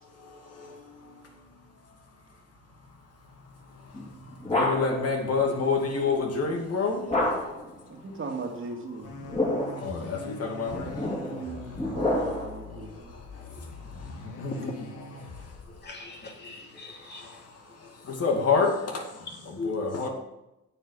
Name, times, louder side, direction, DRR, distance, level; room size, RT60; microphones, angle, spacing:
sound 1, 3.9-5.1 7.1-7.7 9.1-9.9 10.7-12.6, left 1 dB, 20° left, 3.7 m, -29 dB
voice 1, 4.5-7.0 9.8-11.2 14.4-14.5 18.2-18.7 19.6-20.1, left 4 dB, 55° left, 2 dB, 2.2 m, -26 dB
voice 2, 7.9-9.1 11.3-13.1, right 4 dB, 45° right, 2 dB, 2.2 m, -38 dB
sound 2, 9.0-15.8, left 3 dB, 80° left, 2.4 m, -43 dB
voice 3, 15.8-17.5 19.3-19.9, left 4 dB, 35° left, 1 dB, 2.5 m, -39 dB
8.9 x 7.2 x 6.4 m, 0.92 s
cardioid pair, 90°, 30 cm